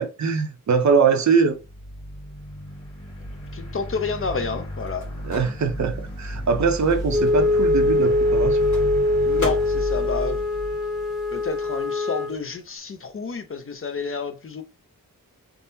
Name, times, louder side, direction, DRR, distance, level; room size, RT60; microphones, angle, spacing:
voice 1, 0.0-1.6 5.2-8.6, right 5 dB, 55° right, 0.6 m, -22 dB
sound 1, 1.5-11.7, equal, 15° left, 1.1 m, -33 dB
voice 2, 3.5-5.1 9.2-10.4 11.3-14.6, left 4 dB, 40° left, 0.5 m, -30 dB
Microwave oven, 4.4-11.6 11.8-13.8, left 3 dB, 55° left, 1.4 m, -41 dB
Wind instrument woodwind instrument, 7.1-12.4, left 2 dB, ahead, 0.7 m, -22 dB
3.5 x 2.0 x 2.6 m
wide cardioid pair, 110°, 34 cm